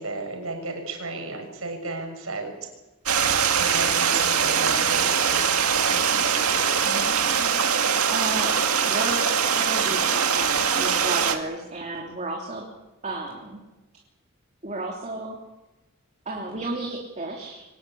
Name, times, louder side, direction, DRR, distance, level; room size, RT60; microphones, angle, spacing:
voice 1, 0.0-2.5 3.6-6.7, right 2 dB, 75° right, 4 dB, 6.7 m, -34 dB
Stream, 3.1-11.4, right 7 dB, 90° right, 2.1 m, -22 dB
voice 2, 6.8-12.6 13.0-13.6 14.6-15.4 16.2-17.6, right 2 dB, 35° right, -1 dB, 3.3 m, -33 dB
24.5 x 19.5 x 8.7 m, 1.1 s
head